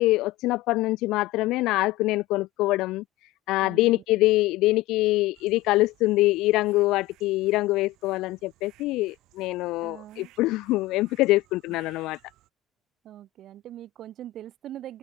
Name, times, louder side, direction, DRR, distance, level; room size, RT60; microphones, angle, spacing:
voice 1, 0.0-3.0 3.5-12.2, left 19 dB, 90° left, 0.8 m, -24 dB
voice 2, 3.6-4.2 9.8-10.3 11.7-11.8 13.0-15.0, right 12 dB, 65° right, 2.9 m, -42 dB
sound 1, 5.3-12.5, right 17 dB, 80° right, 7.8 m, -60 dB
cardioid pair, 115°, 0 cm